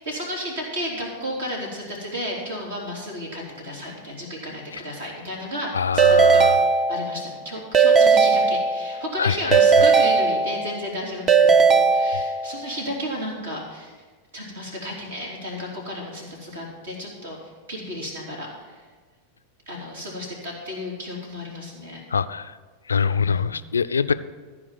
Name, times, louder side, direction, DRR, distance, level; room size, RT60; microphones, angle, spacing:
voice 1, 0.0-13.9 14.3-17.4 17.7-18.8 19.7-22.0 23.1-23.5, equal, 65° right, -2 dB, 3.3 m, -33 dB
voice 2, 5.7-6.6 9.2-9.9 22.1-22.5 22.9-24.1, left 6 dB, 75° left, 13 dB, 0.3 m, -24 dB
Keyboard (musical) / Ringtone, 6.0-7.3 7.7-9.1 9.5-10.9 11.3-12.6, right 5 dB, 25° right, 0.6 m, -17 dB
14.0 x 5.0 x 7.2 m, 1.4 s
figure-of-eight pair, 90°, 0 cm